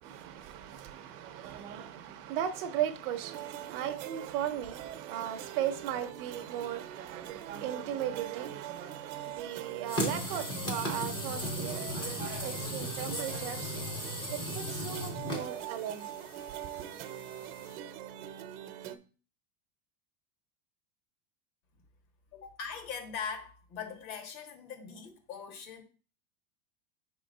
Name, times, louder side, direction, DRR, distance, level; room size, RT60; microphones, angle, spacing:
voice 1, 0.0-16.1 16.5-16.9, right 10 dB, 40° right, 0.6 m, -37 dB
sound 1, 3.2-19.0, right 11 dB, 70° right, 0.8 m, -44 dB
sound 2, 9.9-17.7, equal, 10° left, 0.4 m, -37 dB
voice 2, 22.3-25.8, left 6 dB, 70° left, 1.7 m, -41 dB
5.0 x 3.8 x 5.3 m
supercardioid pair, 170°, 44 cm